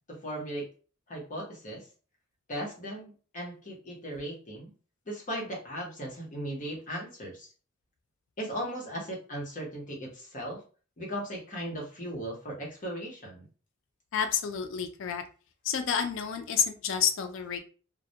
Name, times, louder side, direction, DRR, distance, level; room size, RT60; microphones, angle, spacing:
voice 1, 0.1-0.7 1.1-1.9 2.5-4.7 5.1-7.5 8.4-10.6 11.0-13.5, equal, 40° left, -2 dB, 0.8 m, -37 dB
voice 2, 14.1-15.2 15.6-17.6, left 7 dB, 65° left, 7 dB, 0.3 m, -29 dB
2.1 x 2.1 x 2.7 m, 0.38 s
head